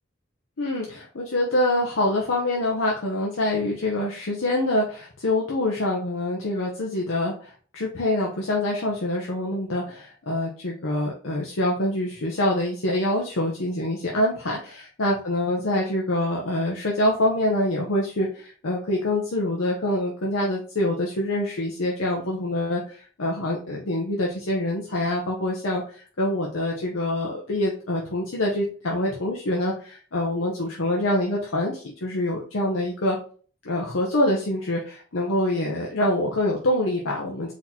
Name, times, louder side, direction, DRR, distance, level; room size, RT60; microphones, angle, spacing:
voice 1, 0.6-33.2 33.6-37.5, left 1 dB, 80° left, -2 dB, 0.8 m, -25 dB
4.2 x 2.9 x 4.2 m, 0.42 s
head